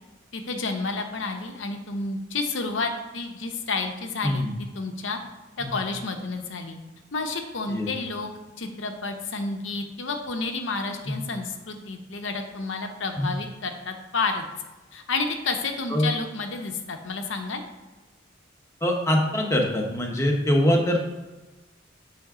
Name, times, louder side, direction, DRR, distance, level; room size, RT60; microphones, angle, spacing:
voice 1, 0.3-4.5 4.7-5.2 5.6-6.8 7.1-8.3 8.6-14.5 14.9-17.6, left 3 dB, 75° left, 5 dB, 0.7 m, -30 dB
voice 2, 18.8-21.0, left 1 dB, 15° left, 1 dB, 0.8 m, -23 dB
6.7 x 3.5 x 4.8 m, 1.1 s
head